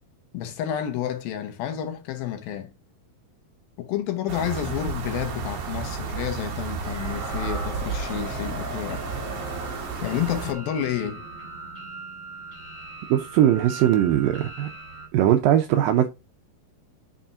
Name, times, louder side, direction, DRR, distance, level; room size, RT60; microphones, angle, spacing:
voice 1, 0.3-2.7 3.8-9.0 10.0-11.2, left 10 dB, 75° left, 2.6 m, -30 dB
sound 1, 4.3-10.5, right 5 dB, 60° right, 1.6 m, -32 dB
sound 2, 6.8-15.1, right 1 dB, 60° left, 0.5 m, -39 dB
voice 2, 13.1-14.7 15.1-16.1, right 11 dB, 80° right, 2.1 m, -20 dB
7.2 x 5.6 x 2.5 m
omnidirectional pair, 4.6 m